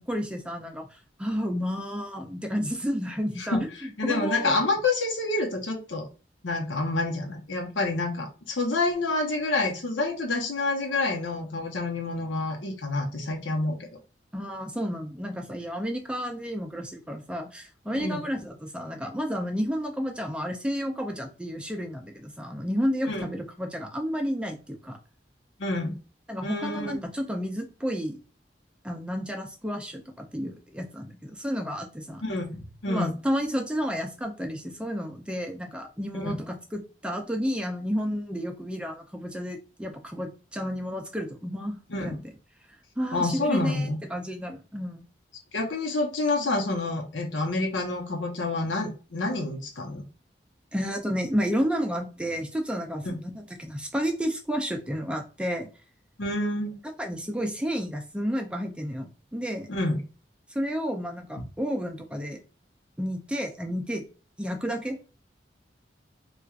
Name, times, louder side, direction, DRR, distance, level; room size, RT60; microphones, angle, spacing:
voice 1, 0.0-4.6 14.3-25.0 26.3-28.2 28.8-32.2 32.9-42.2 43.0-45.0 50.7-55.7 57.0-59.7 60.5-62.4 63.0-64.0 64.4-65.0, equal, 5° right, 4 dB, 0.4 m, -31 dB
voice 2, 4.0-6.1 6.4-13.8 17.9-18.2 23.1-23.3 25.6-26.0 26.4-27.0 32.2-33.1 36.1-36.3 41.9-42.2 43.1-44.0 45.5-50.0 53.0-53.2 56.2-56.8 59.7-60.0 61.4-61.5, left 2 dB, 90° left, 2 dB, 0.9 m, -28 dB
4.3 x 2.4 x 2.4 m, 0.34 s
head